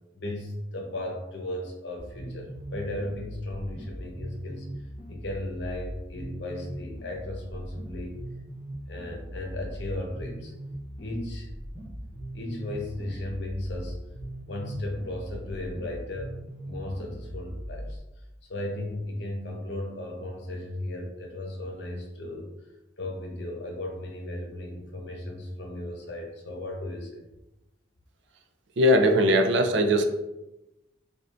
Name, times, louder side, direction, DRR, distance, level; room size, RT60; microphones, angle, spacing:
voice 1, 0.1-4.7 5.1-8.1 8.9-10.5 11.0-11.6 12.3-14.1 14.5-16.3 16.6-18.0 18.5-22.5 23.0-27.2, left 1 dB, 60° left, 1 dB, 0.7 m, -35 dB
sound 1, 2.0-18.0, right 1 dB, 5° right, 0.9 m, -40 dB
voice 2, 28.8-30.1, equal, 65° right, 6 dB, 0.4 m, -20 dB
5.0 x 2.4 x 2.5 m, 0.95 s
head